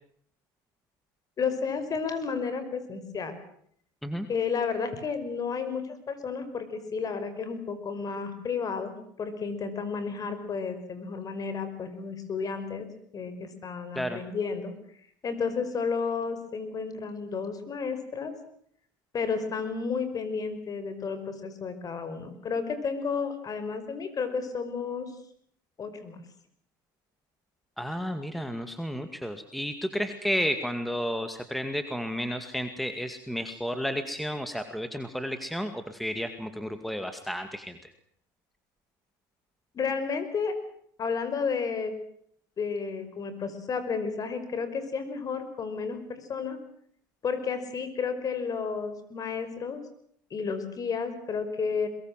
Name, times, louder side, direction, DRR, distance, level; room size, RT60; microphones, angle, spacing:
voice 1, 1.4-3.4 4.3-12.9 13.1-14.7 15.2-18.3 19.1-25.1 25.8-26.2 39.7-40.6 41.0-41.9 42.6-46.6 47.2-49.8 50.3-51.9, left 5 dB, 35° left, 11 dB, 5.4 m, -32 dB
voice 2, 27.8-37.9, equal, ahead, 8 dB, 2.2 m, -32 dB
23.0 x 22.0 x 7.6 m, 0.65 s
supercardioid pair, 95°, 11 cm